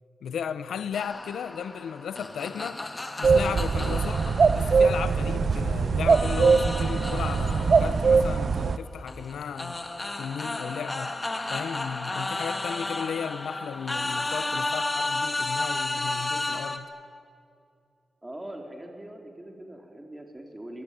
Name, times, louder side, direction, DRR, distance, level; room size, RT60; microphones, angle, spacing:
voice 1, 0.2-2.8 3.2-4.2 4.5-9.8 10.2-11.2 11.5-16.9, left 7 dB, 85° left, 0.9 m, -35 dB
sound 1, 0.9-5.7 6.1-16.8, left 2 dB, 25° left, 2.7 m, -33 dB
sound 2, 3.2-8.8, right 5 dB, 60° right, 0.9 m, -22 dB
voice 2, 18.2-20.8, right 1 dB, 20° right, 4.5 m, -42 dB
24.5 x 23.0 x 9.5 m
cardioid pair, 55°, 0 cm